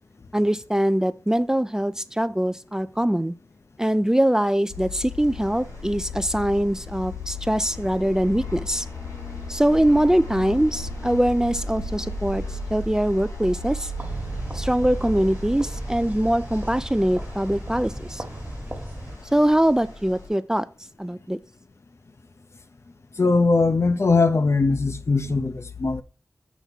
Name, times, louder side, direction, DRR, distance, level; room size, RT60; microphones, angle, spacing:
voice 1, 0.3-3.3 3.8-8.9 9.5-12.4 12.7-13.9 14.5-18.2 19.3-20.7 21.0-21.4, right 1 dB, 10° right, 0.4 m, -22 dB
sound 1, 4.7-20.3, left 1 dB, 85° left, 3.1 m, -35 dB
sound 2, 14.0-19.2, right 1 dB, 30° right, 1.3 m, -37 dB
voice 2, 23.2-26.0, left 3 dB, 55° left, 0.6 m, -20 dB
7.1 x 3.5 x 5.8 m
wide cardioid pair, 70°, 6 cm